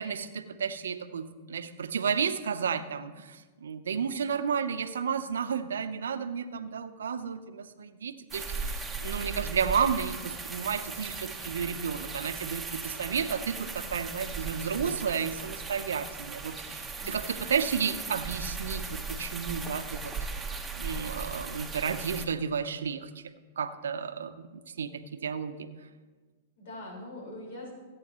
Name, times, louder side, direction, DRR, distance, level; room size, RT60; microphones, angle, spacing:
voice 1, 0.0-20.1 20.8-23.2 23.6-25.7, right 6 dB, 80° right, 10 dB, 0.8 m, -32 dB
sound 1, 8.3-22.3, right 4 dB, 10° right, 1.3 m, -38 dB
voice 2, 16.9-17.4 26.6-27.7, left 1 dB, 65° left, -2 dB, 4.7 m, -43 dB
21.0 x 9.0 x 3.1 m, 1.3 s
hypercardioid pair, 115°, 0 cm